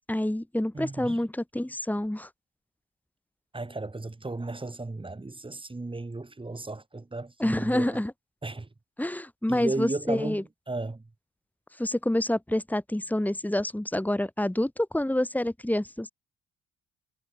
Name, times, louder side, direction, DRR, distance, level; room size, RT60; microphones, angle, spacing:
voice 1, 0.1-2.3 7.4-8.1 9.0-10.4 11.8-16.1, left 1 dB, 5° left, 4.4 m, -27 dB
voice 2, 0.7-1.2 3.5-8.0 8.4-8.7 9.5-11.0, right 2 dB, 15° right, 4.7 m, -35 dB
cardioid pair, 90°, 30 cm